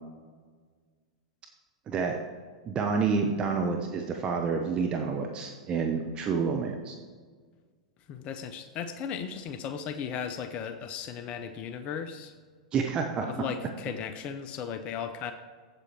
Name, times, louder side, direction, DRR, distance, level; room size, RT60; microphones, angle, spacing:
voice 1, 1.9-2.2 2.6-7.0 12.7-13.3, right 5 dB, 30° right, 3 dB, 0.9 m, -28 dB
voice 2, 8.1-12.3 13.2-15.3, left 7 dB, 35° left, 8 dB, 0.6 m, -36 dB
8.1 x 7.8 x 4.5 m, 1.5 s
figure-of-eight pair, 100°, 3 cm